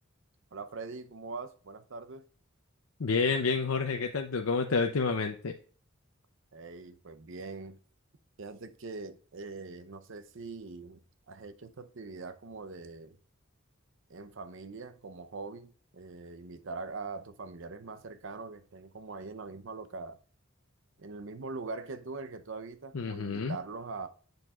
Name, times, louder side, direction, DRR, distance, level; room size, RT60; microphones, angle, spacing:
voice 1, 0.5-2.2 6.5-7.8 8.4-11.0 11.3-13.2 14.1-20.2 21.0-24.1, right 3 dB, 65° right, 0.7 m, -42 dB
voice 2, 3.0-5.5 22.9-23.6, left 4 dB, 85° left, 0.7 m, -29 dB
7.9 x 7.0 x 2.4 m
head